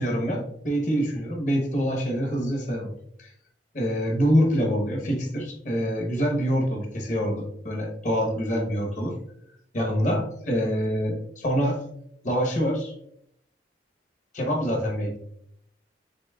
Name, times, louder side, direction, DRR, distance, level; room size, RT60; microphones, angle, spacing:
voice 1, 0.0-2.9 3.2-3.3 3.7-9.2 9.7-11.8 12.2-12.9 14.3-15.2, equal, 40° left, 2 dB, 0.9 m, -25 dB
6.9 x 3.0 x 2.3 m, 0.72 s
head